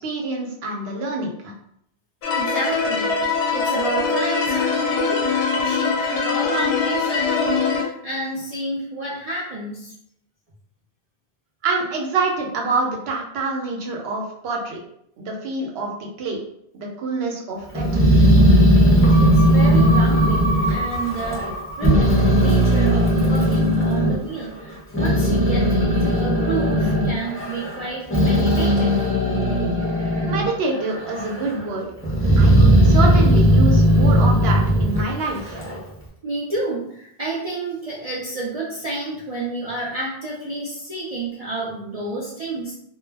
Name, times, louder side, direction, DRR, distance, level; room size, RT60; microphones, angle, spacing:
voice 1, 0.0-1.5 11.6-14.8 15.2-16.4 16.7-18.0 30.3-31.9 32.4-35.6, right 3 dB, 70° right, 0 dB, 0.8 m, -26 dB
sound 1, 2.2-7.8, left 5 dB, 85° left, 0.9 m, -22 dB
voice 2, 2.3-5.3 5.5-9.9 19.2-29.1 36.2-42.7, right 2 dB, 50° right, -6 dB, 0.5 m, -30 dB
Growling, 17.7-21.5 21.8-24.1 24.7-30.5 30.9-31.6 32.0-35.8, equal, 20° left, 0.4 m, -17 dB
sound 2, 19.0-23.7 24.1-24.2, right 1 dB, 55° left, 0.7 m, -29 dB
2.2 x 2.1 x 3.3 m, 0.72 s
omnidirectional pair, 1.1 m